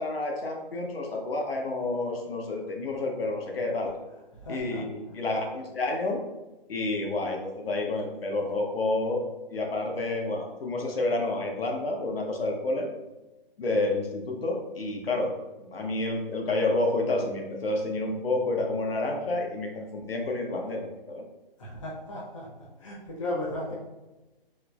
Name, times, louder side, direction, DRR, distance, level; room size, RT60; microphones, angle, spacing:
voice 1, 0.0-3.9 4.5-6.2 6.7-9.2 9.5-12.9 13.6-15.3 15.6-21.2, left 2 dB, 75° left, 1 dB, 0.8 m, -29 dB
voice 2, 4.4-4.8 21.6-22.5 22.8-23.7, left 1 dB, 35° left, -5 dB, 0.8 m, -35 dB
4.4 x 2.0 x 2.3 m, 1.1 s
hypercardioid pair, 170°, 29 cm